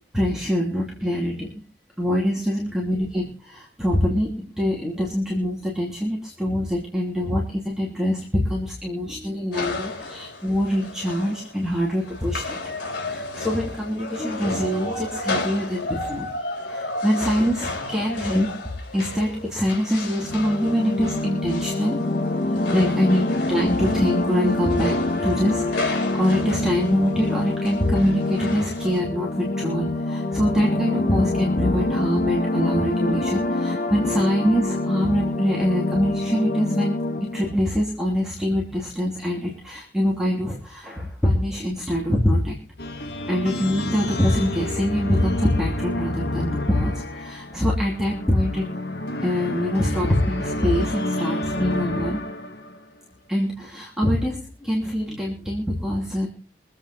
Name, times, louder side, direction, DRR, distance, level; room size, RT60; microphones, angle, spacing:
voice 1, 0.1-1.5 2.0-16.3 16.7-18.5 18.9-22.0 22.7-37.0 37.2-42.6 43.3-48.7 49.2-52.2 53.3-56.3, equal, 5° right, -3 dB, 2.8 m, -24 dB
sound 1, 9.5-29.0, left 2 dB, 85° left, 3.8 m, -33 dB
sound 2, 20.2-37.5, left 2 dB, 45° left, 0.9 m, -26 dB
sound 3, 42.8-52.8, left 1 dB, 60° left, 1.3 m, -29 dB
23.5 x 8.1 x 4.3 m, 0.36 s
head